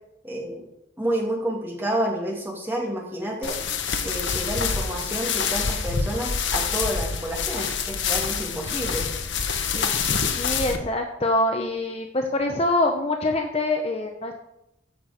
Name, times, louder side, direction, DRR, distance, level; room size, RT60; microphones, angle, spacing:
voice 1, 0.2-0.6 1.0-3.6 4.0-9.0 9.7-10.2, right 1 dB, 10° right, -2 dB, 2.3 m, -29 dB
sound 1, 3.4-10.8, left 6 dB, 65° left, 1.0 m, -26 dB
voice 2, 10.3-14.3, left 2 dB, 30° left, 4 dB, 0.8 m, -24 dB
14.5 x 6.0 x 5.1 m, 0.85 s
head